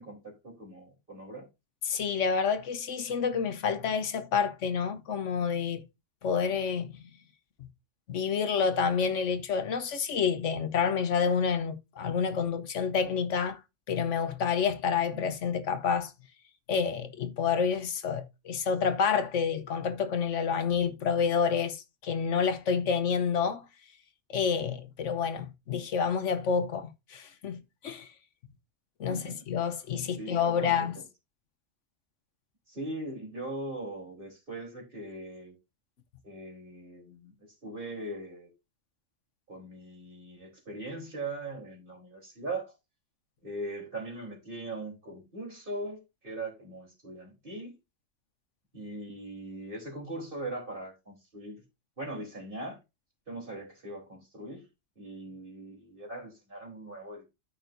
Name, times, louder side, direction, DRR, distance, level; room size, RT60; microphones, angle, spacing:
voice 1, 0.0-1.5 15.1-15.2 29.1-29.4 30.2-30.9 32.7-35.5 36.2-37.3 37.6-38.5 39.5-42.7 43.4-47.7 48.7-51.6 52.0-52.8 53.3-54.6 55.0-57.2, right 2 dB, 45° right, 4.0 m, -40 dB
voice 2, 1.8-5.8 6.2-6.9 8.1-13.6 13.9-16.1 16.7-23.6 24.3-28.1 29.0-31.0, left 6 dB, 75° left, 1.2 m, -28 dB
13.5 x 5.6 x 2.6 m
omnidirectional pair, 1.3 m